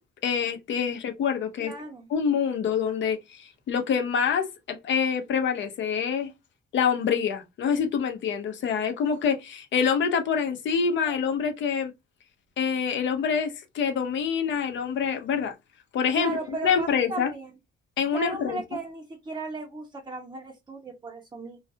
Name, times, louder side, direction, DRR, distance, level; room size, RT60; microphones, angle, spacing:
voice 1, 0.2-1.7 2.1-6.3 6.7-11.9 12.6-15.5 15.9-16.3 16.6-17.3 18.0-18.6, left 6 dB, 70° left, 0.6 m, -26 dB
voice 2, 1.6-2.1 11.0-11.1 16.1-17.5 18.1-21.6, right 3 dB, 20° right, 0.6 m, -36 dB
2.3 x 2.2 x 2.6 m
cardioid pair, 90°, 20 cm